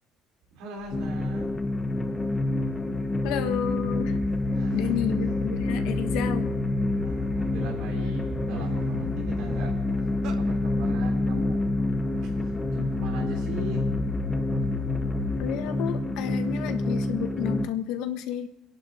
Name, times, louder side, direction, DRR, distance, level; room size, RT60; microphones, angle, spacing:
voice 1, 0.5-1.5 4.5-5.0 7.0-11.7 12.2-13.9, right 4 dB, 90° right, -1 dB, 3.3 m, -40 dB
sound 1, 0.8-15.7, left 5 dB, ahead, 2.7 m, -36 dB
sound 2, 0.9-17.7, left 2 dB, 15° left, 0.9 m, -28 dB
voice 2, 3.2-4.2 4.7-6.5 15.4-18.5, left 9 dB, 85° left, 7 dB, 1.4 m, -31 dB
sound 3, 4.4-4.5 4.7-5.1 5.6-7.1 7.7-7.9 8.2-10.4, right 7 dB, 65° right, 1.5 m, -45 dB
29.5 x 11.0 x 3.8 m, 0.93 s
cardioid pair, 150°, 0 cm